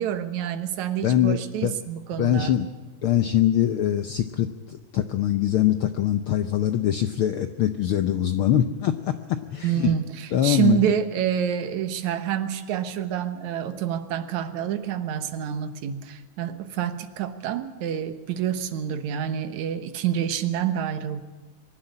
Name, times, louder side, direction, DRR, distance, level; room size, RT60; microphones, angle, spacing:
voice 1, 0.0-2.5 9.6-21.2, right 9 dB, 80° right, 9 dB, 2.5 m, -27 dB
voice 2, 1.0-1.7 2.2-2.7 3.0-9.9 10.3-10.9, left 11 dB, 80° left, 9 dB, 1.2 m, -23 dB
24.0 x 11.5 x 9.9 m, 1.3 s
omnidirectional pair, 3.3 m